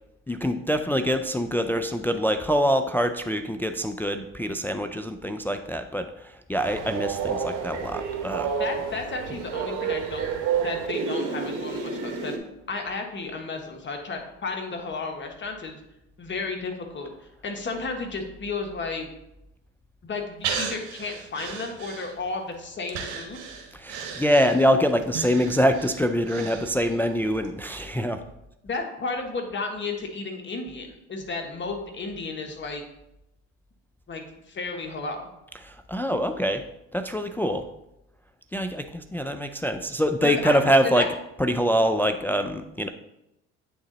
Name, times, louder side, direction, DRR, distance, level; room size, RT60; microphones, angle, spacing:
voice 1, 0.3-8.5 23.7-28.2 35.6-36.6 36.9-37.7 38.5-41.1 41.4-42.9, equal, 5° left, 7 dB, 0.3 m, -24 dB
Train, 6.6-12.4, right 6 dB, 60° right, 1.3 m, -29 dB
voice 2, 8.6-10.3 10.6-12.3 12.7-15.8 16.2-17.1 17.4-19.1 20.0-23.4 28.6-32.8 34.1-35.2 40.2-40.6 40.9-41.1, left 3 dB, 35° left, 3 dB, 1.4 m, -33 dB
Breathing, 20.4-22.4 22.9-27.1 27.4-27.5, right 6 dB, 80° right, 1.1 m, -35 dB
8.4 x 3.7 x 4.0 m, 0.87 s
hypercardioid pair, 70°, 34 cm